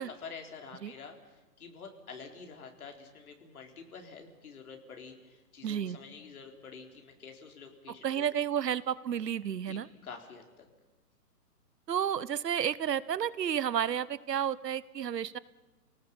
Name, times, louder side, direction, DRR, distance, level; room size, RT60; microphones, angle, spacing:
voice 1, 0.2-8.3 9.7-10.7, left 5 dB, 60° left, 3 dB, 4.2 m, -48 dB
voice 2, 5.6-6.0 8.0-9.9 11.9-15.4, right 9 dB, 85° right, 19 dB, 1.1 m, -31 dB
29.0 x 18.5 x 7.2 m, 1.1 s
hypercardioid pair, 175°, 48 cm